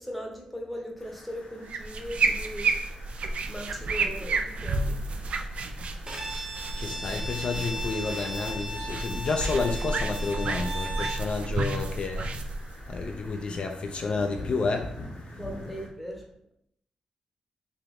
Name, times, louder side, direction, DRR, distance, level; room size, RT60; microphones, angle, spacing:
voice 1, 0.0-2.7 3.5-5.0 15.3-16.2, equal, ahead, 0.9 m, -38 dB
sound 1, 1.0-15.9, left 1 dB, 70° left, 1.3 m, -48 dB
sound 2, 1.6-13.6, right 3 dB, 65° right, 0.4 m, -31 dB
Bowed string instrument, 6.1-11.3, equal, 30° right, 0.8 m, -37 dB
voice 2, 6.7-12.3 12.9-15.0, left 4 dB, 55° left, 0.4 m, -30 dB
3.4 x 2.9 x 3.6 m
wide cardioid pair, 105°, 2 cm